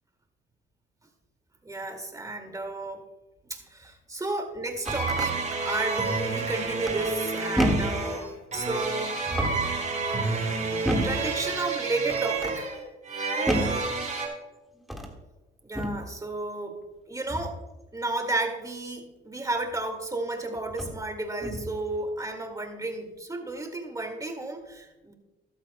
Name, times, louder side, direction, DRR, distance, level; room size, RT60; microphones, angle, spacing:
voice 1, 1.6-3.0 3.5-9.5 11.0-12.8 15.6-17.6 17.9-25.1, right 2 dB, 15° right, 4 dB, 2.2 m, -33 dB
sound 1, 4.6-5.3 6.8-7.2 7.6-8.1 9.2-9.8 10.8-11.3 12.1-12.6 13.5-13.9 14.8-15.2 15.7-16.1 17.3-17.6 19.7-19.8 20.7-21.0 21.4-21.8, equal, ahead, 1.7 m, -29 dB
sound 2, 4.8-14.3, right 4 dB, 40° right, 3.4 m, -29 dB
14.5 x 12.5 x 2.2 m, 1.1 s
cardioid pair, 90°, 20 cm